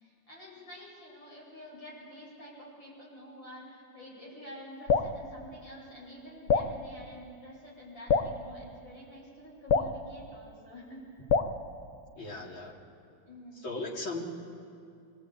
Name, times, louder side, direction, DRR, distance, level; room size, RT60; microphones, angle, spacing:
voice 1, 0.0-11.3 13.3-13.8, equal, 75° left, -5 dB, 9.0 m, -48 dB
Drip, 4.9-5.2 6.5-6.7 8.1-8.4 9.7-10.0 11.3-11.6, left 5 dB, 55° left, 1.3 m, -25 dB
voice 2, 12.2-12.8 13.6-14.3, left 2 dB, 90° left, -1 dB, 3.6 m, -37 dB
26.0 x 20.0 x 9.4 m, 2.4 s
omnidirectional pair, 2.1 m